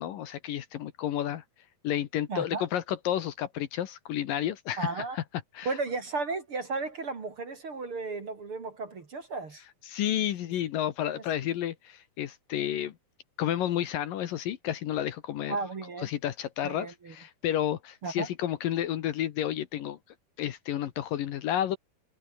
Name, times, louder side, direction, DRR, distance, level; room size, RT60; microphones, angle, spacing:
voice 1, 0.0-1.4 1.8-5.2 5.5-5.8 9.9-12.9 13.4-15.6 16.0-20.0 20.4-21.8, left 11 dB, 70° left, 2.8 m, -31 dB
voice 2, 2.3-2.6 4.8-5.2 5.6-9.6 11.1-11.2 15.5-16.1 16.6-17.1 18.0-18.3, right 3 dB, 40° right, 3.0 m, -34 dB
omnidirectional pair, 4.5 m